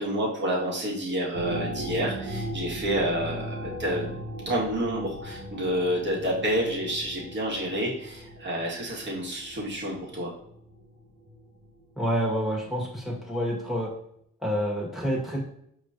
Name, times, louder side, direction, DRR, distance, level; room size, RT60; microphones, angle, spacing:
voice 1, 0.0-4.0 4.5-10.3, right 1 dB, 35° right, -3 dB, 1.6 m, -29 dB
sound 1, 1.3-11.9 12.4-12.5, right 1 dB, 80° right, 1.2 m, -38 dB
voice 2, 12.0-13.9 14.4-15.4, equal, ahead, -4 dB, 1.7 m, -28 dB
5.0 x 3.1 x 2.7 m, 0.71 s
cardioid pair, 90°, 30 cm